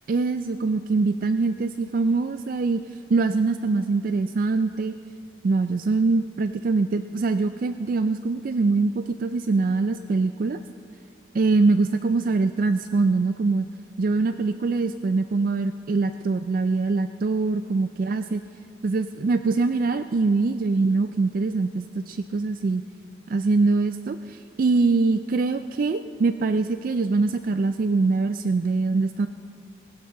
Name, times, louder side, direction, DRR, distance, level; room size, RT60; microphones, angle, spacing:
voice 1, 0.1-4.9 5.4-10.6 11.3-13.7 14.0-18.4 18.8-22.8 23.3-29.3, right 3 dB, 45° right, 10 dB, 0.3 m, -23 dB
20.0 x 17.0 x 3.8 m, 2.4 s
head